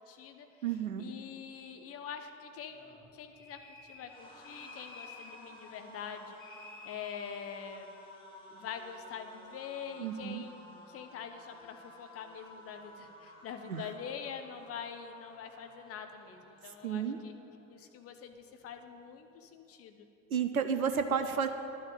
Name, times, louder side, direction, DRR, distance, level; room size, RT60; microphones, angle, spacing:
voice 1, 0.1-0.5 1.0-7.9 8.5-17.3 17.7-20.1, left 7 dB, 35° left, 7 dB, 1.0 m, -45 dB
voice 2, 0.6-1.1 10.0-10.4 13.7-13.8 16.8-17.2 20.3-21.5, right 7 dB, 80° right, 8 dB, 0.7 m, -31 dB
sound 1, 2.6-17.8 18.1-18.3 18.6-19.4, left 1 dB, 10° left, 2.6 m, -55 dB
sound 2, 3.3-4.1 4.4-5.4 6.4-7.4, left 3 dB, 70° left, 2.7 m, -51 dB
10.5 x 6.3 x 8.8 m, 2.8 s
figure-of-eight pair, 70°, 42 cm